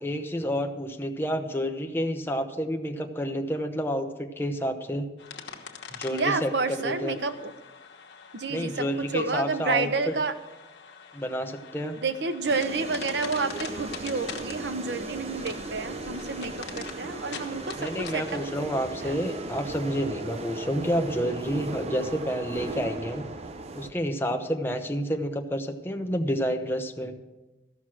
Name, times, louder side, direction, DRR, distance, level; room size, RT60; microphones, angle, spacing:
voice 1, 0.0-5.1 5.9-7.2 8.5-10.1 11.1-12.0 17.7-23.3 23.8-27.1, equal, 15° left, 4 dB, 0.8 m, -29 dB
sound 1, 5.2-18.5, left 6 dB, 80° left, 1.3 m, -44 dB
voice 2, 6.1-7.5 8.3-10.3 12.0-18.3 19.0-19.1, right 4 dB, 70° right, 10 dB, 0.8 m, -30 dB
sound 2, 12.4-23.9, right 2 dB, 35° right, 0.7 m, -37 dB
14.0 x 6.1 x 6.1 m, 1.1 s
head